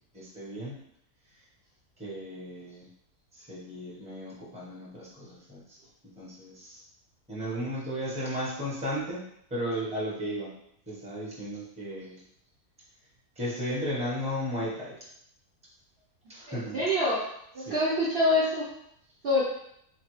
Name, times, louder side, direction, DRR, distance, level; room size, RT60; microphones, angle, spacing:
voice 1, 0.1-0.8 2.0-2.9 3.3-5.8 6.2-6.8 7.3-9.2 9.5-10.5 10.9-12.2 13.4-14.9 16.3-16.8 17.6-17.7, equal, 5° right, -6 dB, 1.0 m, -35 dB
voice 2, 16.5-17.2 17.5-18.7 19.2-19.4, left 1 dB, 50° right, -7 dB, 0.9 m, -25 dB
4.5 x 2.7 x 3.1 m, 0.73 s
omnidirectional pair, 1.6 m